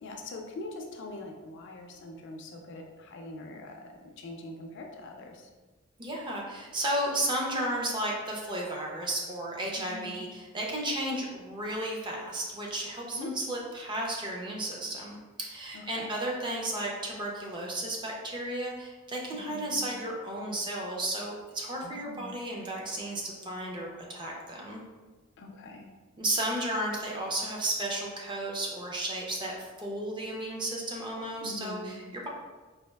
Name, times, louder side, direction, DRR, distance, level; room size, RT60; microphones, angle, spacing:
voice 1, 0.0-5.5 9.8-10.3 13.1-13.4 15.7-16.2 19.3-19.8 21.8-22.4 25.4-25.9 31.4-32.0, left 2 dB, 55° left, 2 dB, 0.4 m, -43 dB
voice 2, 6.0-24.8 26.2-32.3, right 1 dB, 20° right, -2 dB, 0.5 m, -33 dB
4.1 x 2.3 x 2.2 m, 1.3 s
head